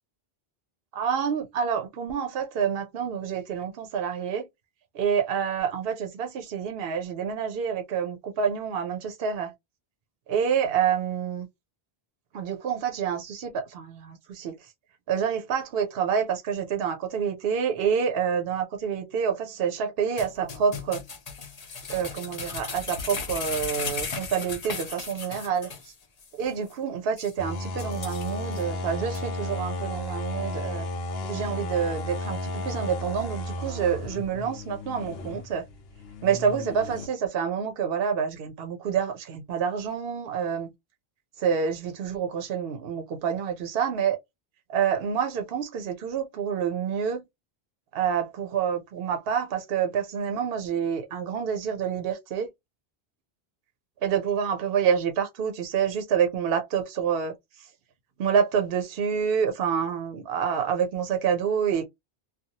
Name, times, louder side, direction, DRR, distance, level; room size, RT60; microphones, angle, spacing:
voice 1, 0.9-4.5 4.9-9.5 10.3-11.5 12.3-14.6 15.1-21.0 21.9-25.7 26.4-30.9 31.2-32.4 32.6-35.6 36.2-40.7 41.4-44.2 44.7-47.2 47.9-52.5 54.0-57.3 58.2-61.8, right 7 dB, 70° right, 0.8 m, -27 dB
sound 1, 20.2-25.9 26.2-26.3 26.7-26.8 27.2-27.3 27.8-28.6 29.1-29.2, left 5 dB, 45° left, 0.7 m, -36 dB
sound 2, 27.4-37.1, left 1 dB, 75° left, 0.8 m, -34 dB
2.6 x 2.3 x 2.8 m
omnidirectional pair, 1.1 m